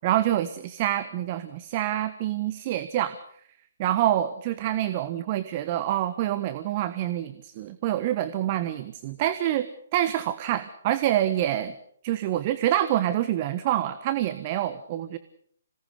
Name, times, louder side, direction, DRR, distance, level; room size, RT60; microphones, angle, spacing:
voice 1, 0.0-3.1 3.8-11.7 12.0-15.2, right 12 dB, 35° right, 12 dB, 1.3 m, -26 dB
26.5 x 18.5 x 6.8 m, 0.63 s
figure-of-eight pair, 135°, 0 cm